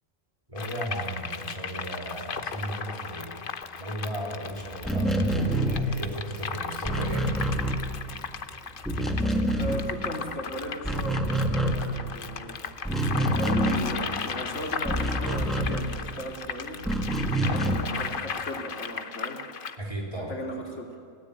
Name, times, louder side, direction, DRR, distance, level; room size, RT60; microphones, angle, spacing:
voice 1, 0.5-3.4 3.8-7.3 17.4-17.7 19.8-20.4, right 1 dB, 25° right, -1 dB, 3.9 m, -35 dB
sound 1, 0.6-19.8, left 6 dB, 50° left, 1.1 m, -36 dB
sound 2, 4.7-8.4 8.7-10.4 10.7-16.3 16.8-18.0, right 1 dB, ahead, 1.8 m, -27 dB
voice 2, 9.5-12.6 13.2-16.9 17.4-19.4 20.3-21.0, equal, 75° left, 1 dB, 3.0 m, -36 dB
29.0 x 17.0 x 8.6 m, 2.3 s
omnidirectional pair, 1.2 m